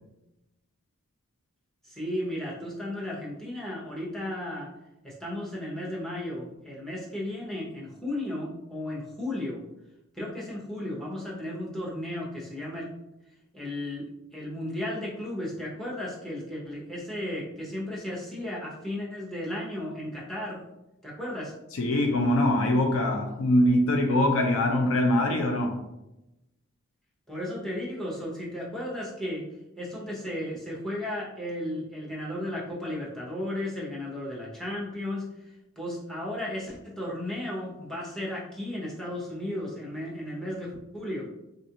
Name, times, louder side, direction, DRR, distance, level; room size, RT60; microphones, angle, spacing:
voice 1, 1.8-4.7 5.0-9.6 10.1-12.9 13.5-20.6 21.0-21.5 27.3-29.5 29.8-41.3, left 1 dB, ahead, 0.7 m, -34 dB
voice 2, 21.7-25.8, left 1 dB, 65° left, 0.5 m, -23 dB
3.6 x 2.4 x 2.8 m
head